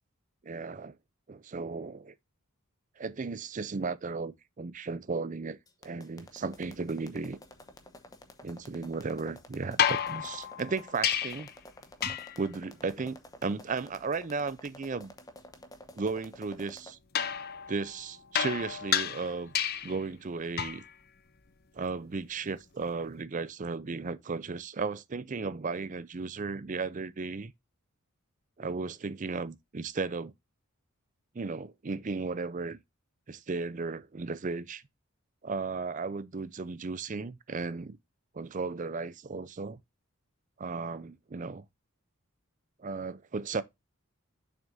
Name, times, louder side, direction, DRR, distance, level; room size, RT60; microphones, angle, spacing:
voice 1, 0.4-1.0 1.3-2.1 3.0-5.6 5.8-7.4 8.4-11.5 12.0-15.1 16.0-17.0 17.7-19.5 19.8-20.8 21.7-27.5 28.6-30.3 31.3-32.8 33.3-34.8 35.4-38.0 38.3-39.8 40.6-41.6 42.8-43.6, right 4 dB, 35° right, 0.5 m, -35 dB
sound 1, 5.7-16.9, left 1 dB, 15° left, 1.0 m, -50 dB
sound 2, 9.8-11.6 12.0-12.5 17.1-20.0 20.6-20.9 22.9-23.0, left 9 dB, 45° left, 0.6 m, -31 dB
7.2 x 6.0 x 2.6 m
head